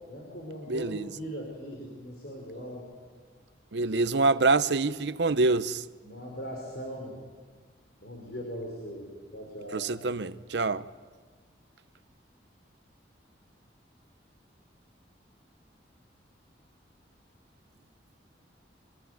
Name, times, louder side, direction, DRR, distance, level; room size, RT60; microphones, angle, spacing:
voice 1, 0.1-2.8 6.0-7.2 8.0-9.1 9.3-9.9, equal, 60° left, 5.4 m, -39 dB
voice 2, 0.7-1.1 3.7-5.8 9.7-10.9, right 3 dB, 70° right, 0.7 m, -26 dB
24.0 x 21.0 x 9.6 m
head